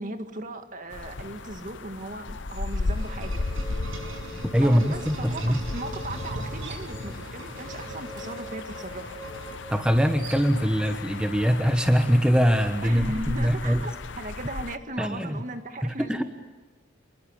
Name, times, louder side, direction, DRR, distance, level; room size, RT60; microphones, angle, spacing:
voice 1, 0.0-3.4 4.6-9.1 12.8-16.2, right 1 dB, 40° right, 7 dB, 1.9 m, -37 dB
sound 1, 0.9-14.8, left 3 dB, 60° left, 0.8 m, -36 dB
sound 2, 2.0-2.2 2.5-11.0, right 4 dB, 70° right, 5.4 m, -51 dB
sound 3, 2.3-10.0, right 1 dB, 90° right, 7.1 m, -38 dB
voice 2, 4.5-5.6 9.7-13.8 15.0-15.4 15.8-16.2, equal, 5° right, 6 dB, 1.2 m, -23 dB
28.5 x 21.0 x 8.7 m, 1.3 s
head